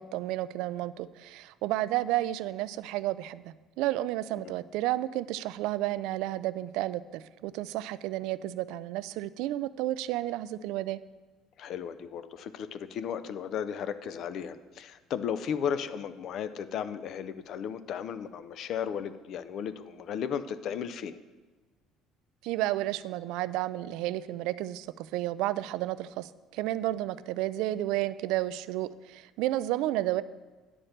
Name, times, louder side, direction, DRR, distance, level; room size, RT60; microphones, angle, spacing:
voice 1, 0.0-11.0 22.4-30.2, right 15 dB, 80° right, 16 dB, 0.3 m, -31 dB
voice 2, 11.6-21.2, left 8 dB, 50° left, 13 dB, 0.5 m, -35 dB
9.9 x 4.4 x 6.5 m, 1.3 s
cardioid pair, 140°, 0 cm